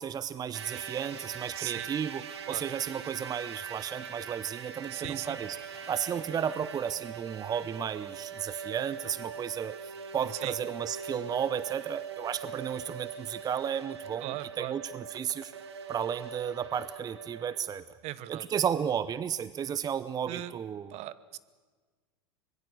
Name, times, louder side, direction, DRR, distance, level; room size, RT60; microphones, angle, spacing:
voice 1, 0.0-5.6 5.9-15.5 15.9-17.8 18.3-20.9, right 8 dB, 30° right, 16 dB, 0.7 m, -33 dB
sound 1, 0.5-17.6, right 6 dB, 85° right, 1.8 m, -42 dB
voice 2, 1.6-1.9 2.5-2.6 4.9-5.4 10.3-10.5 14.2-14.7 18.0-18.5 20.3-20.5 20.9-21.4, right 16 dB, 50° right, 17 dB, 1.0 m, -38 dB
Water / Splash splatter, 4.8-6.9, left 6 dB, 55° left, 4.9 m, -54 dB
24.5 x 21.0 x 7.8 m, 1.4 s
hypercardioid pair, 85°, 14 cm